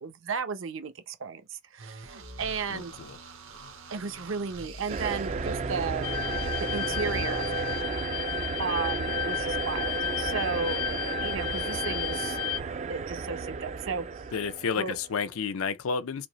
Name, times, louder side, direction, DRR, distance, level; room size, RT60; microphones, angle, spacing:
voice 1, 0.0-2.9 3.9-6.1 6.7-7.7 8.6-12.4 12.9-14.2 14.8-15.0, right 5 dB, 65° right, 0.6 m, -34 dB
sound 1, 1.8-7.8, right 1 dB, 80° right, 1.2 m, -43 dB
voice 2, 2.7-3.2 14.3-16.3, left 5 dB, 90° left, 0.5 m, -31 dB
sound 2, 4.9-15.2, right 4 dB, 35° right, 0.3 m, -33 dB
sound 3, 6.0-12.6, left 10 dB, 25° left, 0.5 m, -33 dB
5.0 x 2.0 x 3.0 m
head